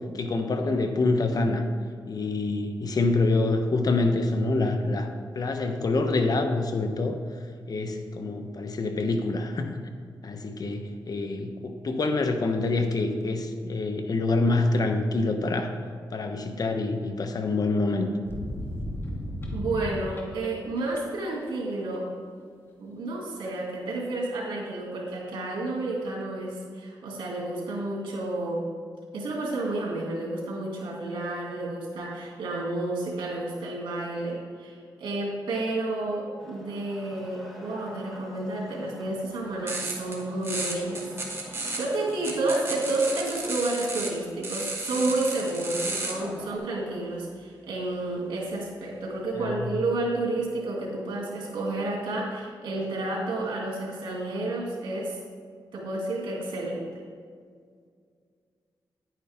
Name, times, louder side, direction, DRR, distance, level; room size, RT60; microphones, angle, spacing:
voice 1, 0.1-1.6 2.1-5.1 5.3-7.2 7.7-9.8 10.2-15.7 16.1-18.1 49.3-49.7, left 3 dB, 50° left, 6 dB, 1.1 m, -26 dB
sound 1, 18.2-20.5 20.8-21.2, left 1 dB, 30° left, 2.0 m, -34 dB
voice 2, 19.5-22.1 22.8-28.7 29.1-41.1 41.5-55.2 55.7-56.9, right 2 dB, 85° right, -2 dB, 2.5 m, -30 dB
Wood, 36.4-43.2 44.8-46.6, equal, 5° left, 2.0 m, -47 dB
sound 2, 39.7-40.2 40.4-44.1 44.4-46.1, right 2 dB, 35° right, 2.1 m, -33 dB
10.5 x 9.3 x 3.7 m, 2.1 s
cardioid pair, 75°, 8 cm